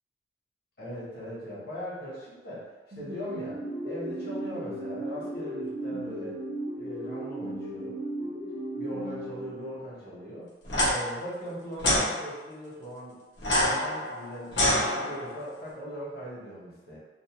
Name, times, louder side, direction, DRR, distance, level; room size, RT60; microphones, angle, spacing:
voice 1, 0.8-2.7 2.9-3.6 3.8-6.4 6.7-8.3 8.8-10.5 10.9-13.2 13.6-17.0, equal, 60° left, -8 dB, 1.1 m, -40 dB
sound 1, 2.9-10.1, right 1 dB, 45° right, 0.5 m, -36 dB
sound 2, 10.6-10.9 11.8-12.0 13.4-15.4, left 1 dB, 85° left, 0.8 m, -26 dB
2.6 x 2.1 x 3.0 m, 1.3 s
head